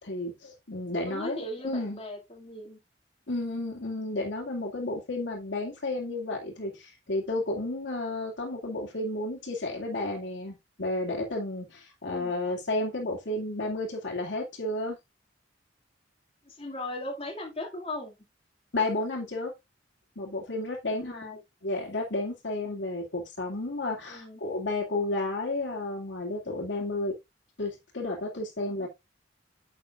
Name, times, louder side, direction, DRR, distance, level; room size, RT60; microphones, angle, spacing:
voice 1, 0.0-2.0 3.3-15.0 18.7-19.5 20.2-27.1 27.6-28.9, left 2 dB, 85° left, 2.3 m, -32 dB
voice 2, 0.9-2.8 12.0-12.3 16.4-18.1 20.9-21.4 24.1-24.4 28.8-28.9, left 1 dB, 30° left, 2.2 m, -38 dB
9.4 x 6.6 x 2.4 m
head